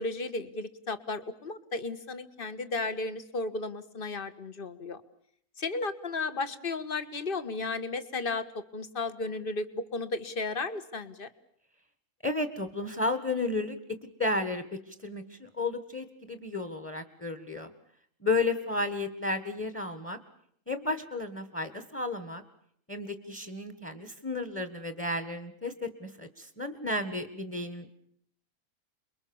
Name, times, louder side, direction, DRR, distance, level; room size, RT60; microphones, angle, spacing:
voice 1, 0.0-5.0 5.6-8.4 8.7-11.3, left 3 dB, 40° left, 12 dB, 1.6 m, -34 dB
voice 2, 12.2-13.8 14.2-17.7 18.2-20.2 20.7-22.4 22.9-27.9, left 2 dB, 10° left, 8 dB, 1.5 m, -33 dB
29.0 x 22.5 x 7.2 m, 0.69 s
omnidirectional pair, 1.6 m